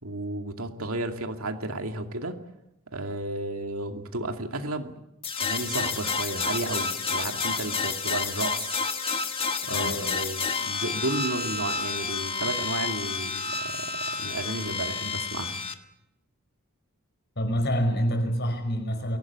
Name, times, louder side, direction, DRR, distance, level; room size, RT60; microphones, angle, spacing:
voice 1, 0.0-2.4 2.9-4.9 5.4-8.7 9.6-15.6, right 2 dB, 70° right, 5 dB, 2.5 m, -33 dB
sound 1, 5.2-15.7, left 5 dB, 25° left, 1.5 m, -30 dB
voice 2, 9.7-10.2 17.4-19.2, equal, 50° left, 6 dB, 5.2 m, -27 dB
24.0 x 17.5 x 9.7 m, 0.85 s
head